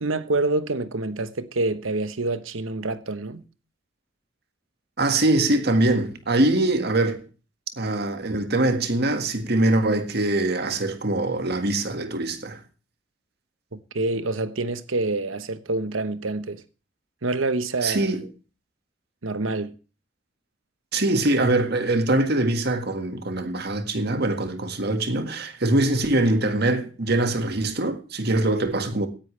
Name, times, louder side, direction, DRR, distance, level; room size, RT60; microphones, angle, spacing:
voice 1, 0.0-3.4 13.7-16.6 17.2-18.1 19.2-19.7, right 2 dB, 85° right, 1.1 m, -27 dB
voice 2, 5.0-7.2 7.8-12.6 17.8-18.3 20.9-29.1, right 2 dB, 55° right, 1.8 m, -23 dB
17.0 x 10.5 x 3.3 m
head